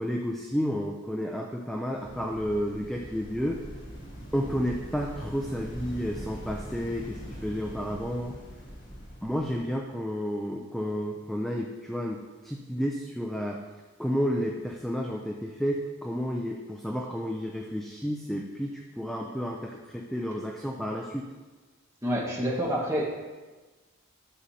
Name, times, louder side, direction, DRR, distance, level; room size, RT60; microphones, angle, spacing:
voice 1, 0.0-3.6 4.3-8.4 9.2-13.6 14.0-21.3, equal, ahead, 0 dB, 0.4 m, -31 dB
sound 1, 2.0-9.7, equal, 75° left, 2.7 m, -42 dB
voice 2, 22.0-23.1, equal, 15° right, -4 dB, 1.4 m, -28 dB
11.0 x 6.6 x 2.8 m, 1.3 s
head